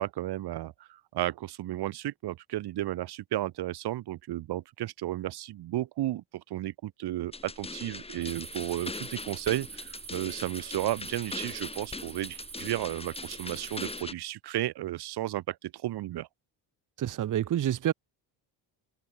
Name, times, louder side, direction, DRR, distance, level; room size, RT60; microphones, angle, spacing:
voice 1, 0.0-16.3, right 14 dB, 60° right, 1.4 m, -33 dB
sound 1, 7.3-14.1, left 3 dB, 15° left, 1.5 m, -41 dB
sound 2, 8.2-14.0, right 7 dB, 25° right, 1.3 m, -46 dB
voice 2, 17.0-17.9, right 11 dB, 45° right, 1.1 m, -28 dB
cardioid pair, 120°, 44 cm